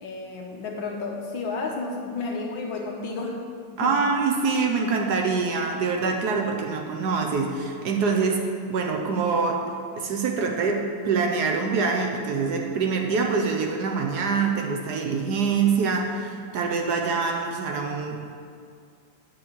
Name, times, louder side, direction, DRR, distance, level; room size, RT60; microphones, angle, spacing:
voice 1, 0.0-3.4 3.7-4.0, left 3 dB, 70° left, 1 dB, 1.8 m, -32 dB
voice 2, 3.8-9.6 10.0-18.2, right 4 dB, 60° right, 2 dB, 1.2 m, -25 dB
8.7 x 4.9 x 7.3 m, 2.3 s
omnidirectional pair, 2.2 m